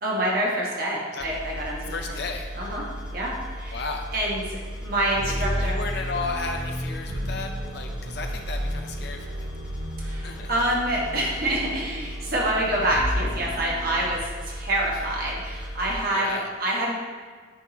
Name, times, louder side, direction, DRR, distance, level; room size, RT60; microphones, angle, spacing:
voice 1, 0.0-2.2 2.5-2.8 3.1-3.8 4.1-5.8 10.0-16.9, right 1 dB, 50° right, -4 dB, 1.4 m, -27 dB
sound 1, 1.2-16.0, equal, 5° right, 0.6 m, -36 dB
voice 2, 1.9-2.5 3.7-4.1 5.3-9.5 10.2-10.5 16.1-16.5, left 3 dB, 55° left, 3 dB, 0.6 m, -34 dB
sound 2, 5.1-14.1, equal, 80° right, 1.2 m, -33 dB
10.0 x 3.7 x 2.9 m, 1.5 s
head